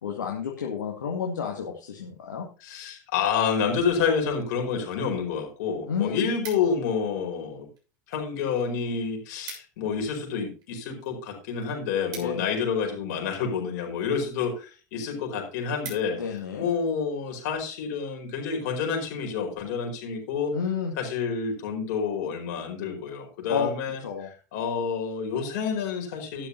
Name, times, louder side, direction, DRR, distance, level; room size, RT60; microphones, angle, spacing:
voice 1, 0.0-2.5 5.9-6.3 12.2-12.5 16.1-16.7 20.5-20.9 23.5-23.7 24.0-24.3, left 7 dB, 70° left, 0 dB, 2.1 m, -30 dB
voice 2, 2.6-7.7 8.1-16.2 16.5-20.5 21.0-24.0 24.5-26.5, left 6 dB, 55° left, 3 dB, 4.8 m, -28 dB
sound 1, 5.9-7.0 7.7-8.3 8.6-8.7 8.9-9.0 9.2-9.9 10.2-13.1 13.8-14.1 14.6-14.7 15.1-15.2 15.4-16.4 16.9-17.1, right 5 dB, 40° right, 7.0 m, -44 dB
12.5 x 11.0 x 2.8 m, 0.35 s
figure-of-eight pair, 85°, 10 cm